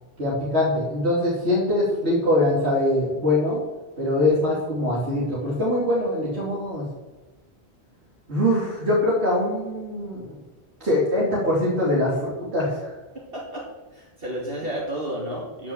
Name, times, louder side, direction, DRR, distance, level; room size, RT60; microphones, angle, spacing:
voice 1, 0.2-3.6 4.0-6.8 8.3-10.4 10.8-12.9, left 1 dB, 80° right, -6 dB, 3.4 m, -23 dB
voice 2, 13.1-15.7, right 1 dB, 60° right, -4 dB, 2.6 m, -32 dB
14.5 x 6.1 x 7.3 m, 1.2 s
omnidirectional pair, 1.1 m